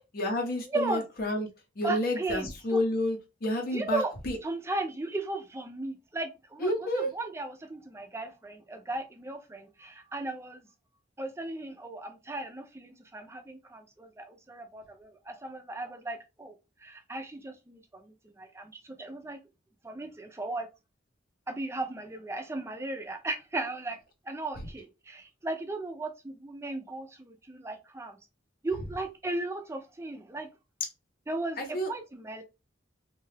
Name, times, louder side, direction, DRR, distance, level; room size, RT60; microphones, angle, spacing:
voice 1, 0.2-1.5 1.8-4.4 6.6-7.1 31.6-31.9, left 1 dB, 50° left, 0.6 m, -30 dB
voice 2, 0.7-1.0 1.8-2.8 3.7-4.1 4.4-10.7 11.2-16.5 16.8-19.4 19.8-20.7 21.5-24.0 24.3-28.2 28.6-30.5 31.3-32.4, right 2 dB, 15° right, 0.4 m, -36 dB
2.7 x 2.3 x 3.2 m
head